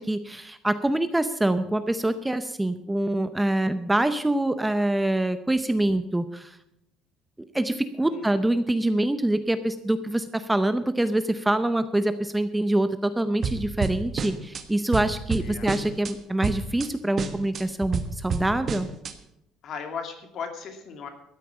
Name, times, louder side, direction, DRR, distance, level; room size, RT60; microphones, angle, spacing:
voice 1, 0.0-6.6 7.5-18.9, right 1 dB, 5° right, 11 dB, 0.6 m, -25 dB
voice 2, 8.1-8.4 15.4-15.7 19.6-21.1, left 6 dB, 50° left, 6 dB, 2.4 m, -37 dB
sound 1, 13.4-14.6 14.9-16.1 16.4-16.9 17.2-19.1, right 5 dB, 35° right, 1.3 m, -30 dB
13.5 x 9.2 x 7.1 m, 0.80 s
cardioid pair, 145°, 0 cm